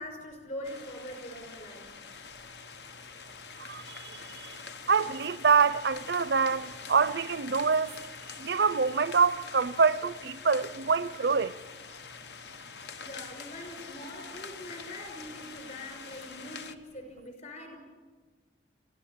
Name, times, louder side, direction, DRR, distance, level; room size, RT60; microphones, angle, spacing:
voice 1, 0.0-1.9 13.0-17.8, left 1 dB, 45° left, 5.7 m, -43 dB
sound 1, 0.6-16.7, left 5 dB, 65° left, 1.0 m, -45 dB
voice 2, 3.6-4.6 4.9-7.9 8.4-11.5, right 5 dB, 65° right, 0.6 m, -26 dB
27.5 x 14.5 x 8.6 m
head